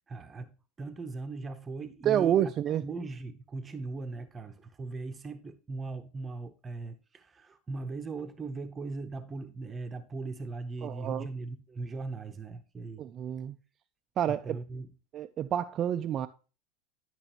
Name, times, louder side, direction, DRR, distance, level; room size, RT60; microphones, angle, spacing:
voice 1, 0.1-2.5 2.8-13.0 14.3-14.9, right 3 dB, 20° right, 0.8 m, -39 dB
voice 2, 2.0-2.8 10.8-11.3 13.0-13.6 14.2-14.6 15.1-16.3, right 10 dB, 40° right, 0.4 m, -29 dB
11.0 x 6.0 x 2.9 m
hypercardioid pair, 95°, 0 cm